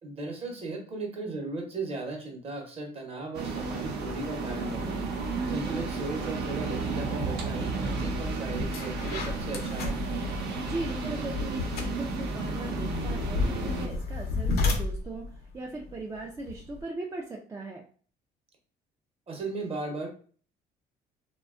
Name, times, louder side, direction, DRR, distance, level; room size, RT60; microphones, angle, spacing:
voice 1, 0.0-5.1 5.5-10.0 19.3-20.1, right 2 dB, 35° right, 1 dB, 0.8 m, -36 dB
sound 1, 3.3-13.9, right 3 dB, 70° right, 0.7 m, -32 dB
voice 2, 5.4-5.8 10.5-11.7 11.9-15.3 15.5-17.8, right 2 dB, 20° right, -1 dB, 0.3 m, -38 dB
sound 2, 8.0-8.2 8.5-16.8, left 3 dB, 70° left, 0.6 m, -33 dB
2.7 x 2.2 x 2.4 m, 0.43 s
cardioid pair, 110°, 17 cm